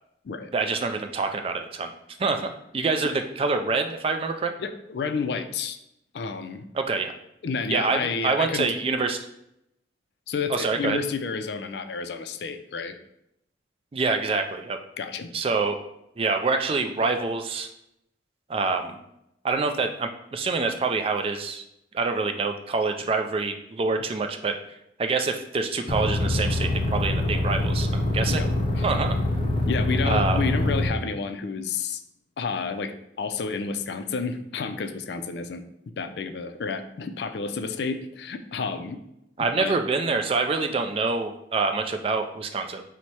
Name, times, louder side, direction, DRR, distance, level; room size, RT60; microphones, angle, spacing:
voice 1, 0.5-1.9 2.2-4.5 6.7-7.1 7.7-9.3 10.5-11.0 13.9-14.8 15.3-15.8 16.2-17.7 18.5-19.0 19.4-21.6 21.9-24.5 25.0-28.4 28.8-29.2 30.0-30.4 39.4-42.8, right 4 dB, 30° right, 6 dB, 0.3 m, -26 dB
voice 2, 4.6-5.8 6.1-6.7 7.4-8.7 10.3-13.0 15.0-15.3 28.3-28.5 28.7-28.8 29.7-32.0 32.4-35.6 36.0-39.0 39.4-39.8, left 5 dB, 65° left, 8 dB, 0.4 m, -30 dB
sound 1, 25.9-30.9, left 1 dB, 30° left, 0.6 m, -25 dB
4.2 x 2.1 x 4.6 m, 0.79 s
head